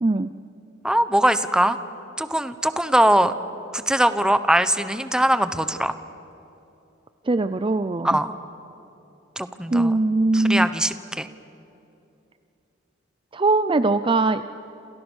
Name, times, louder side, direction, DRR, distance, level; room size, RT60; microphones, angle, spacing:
voice 1, 0.0-0.3 7.3-8.2 9.7-10.7 13.3-14.4, right 2 dB, 25° right, 12 dB, 0.5 m, -21 dB
voice 2, 0.8-1.8 2.2-3.3 3.7-5.9 8.0-8.3 9.4-10.0 10.3-11.3, right 1 dB, 5° right, 11 dB, 1.0 m, -21 dB
28.0 x 28.0 x 6.4 m, 2.8 s
head